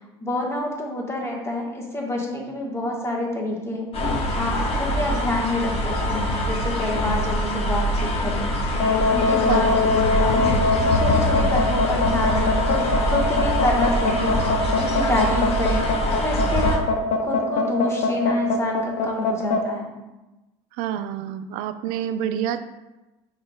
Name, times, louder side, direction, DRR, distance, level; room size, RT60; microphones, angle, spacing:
voice 1, 0.2-8.8 9.1-10.6 11.0-15.8 16.2-16.8 17.2-19.9, left 1 dB, 20° left, -2 dB, 1.3 m, -27 dB
sound 1, 3.9-16.8, equal, 45° left, 1.0 m, -24 dB
sound 2, 8.7-19.6, left 3 dB, 60° left, 0.6 m, -22 dB
voice 2, 20.8-22.6, right 10 dB, 70° right, 11 dB, 0.4 m, -28 dB
5.3 x 3.9 x 2.3 m, 1.0 s
hypercardioid pair, 75°, 14 cm